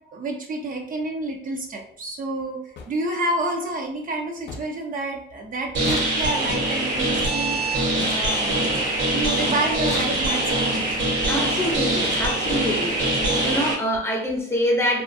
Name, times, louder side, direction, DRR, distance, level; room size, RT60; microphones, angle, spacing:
voice 1, 0.1-8.7 9.1-11.0 11.5-11.7, right 2 dB, 45° right, 2 dB, 0.5 m, -29 dB
sound 1, 0.6-0.8 2.1-2.2 2.4-2.5 2.8-2.9 3.4-3.9 4.1-4.2 4.5-4.9 5.1-9.1 9.7-10.7 11.5-11.6 11.8-12.4 13.4-13.5 13.8-14.0 14.3-14.4, left 4 dB, 60° left, 0.6 m, -38 dB
sound 2, 5.7-13.7, right 1 dB, 70° right, 1.1 m, -23 dB
voice 2, 11.3-15.0, equal, 15° left, -1 dB, 0.7 m, -25 dB
2.4 x 2.4 x 2.5 m, 0.64 s
cardioid pair, 90°, 20 cm